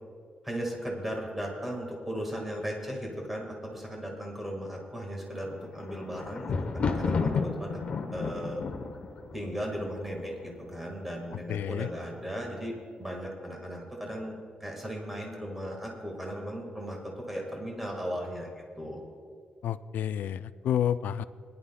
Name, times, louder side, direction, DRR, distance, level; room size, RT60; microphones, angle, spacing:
voice 1, 0.4-7.8 8.1-8.6 9.3-14.3 14.6-18.5 18.8-19.0, equal, 5° right, 0 dB, 1.7 m, -36 dB
Thunder, 5.5-10.6 11.3-11.8 12.1-12.2, left 5 dB, 45° left, 0.8 m, -32 dB
voice 2, 11.5-11.9 19.6-21.2, left 10 dB, 85° left, 14 dB, 0.3 m, -30 dB
21.0 x 11.0 x 2.2 m, 2.1 s
wide cardioid pair, 170°, 3 cm